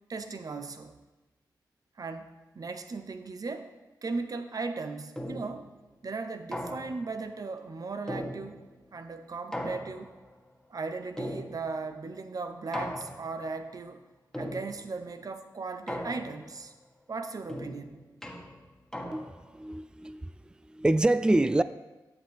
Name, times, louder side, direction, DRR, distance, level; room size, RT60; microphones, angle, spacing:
voice 1, 0.1-1.0 2.0-3.7 4.0-5.7 6.0-8.6 8.9-10.1 10.7-14.0 14.4-16.7 17.1-18.0, right 4 dB, 50° right, 0.7 m, -37 dB
sound 1, 5.2-5.7 6.5-7.2 8.1-8.8 9.5-10.3 11.2-11.9 12.7-13.5 14.3-15.0 15.9-16.6 17.5-19.5, equal, 5° left, 1.4 m, -38 dB
voice 2, 19.1-20.3 20.7-21.6, right 2 dB, 10° right, 0.3 m, -26 dB
9.7 x 7.7 x 3.4 m
cardioid pair, 55°, 8 cm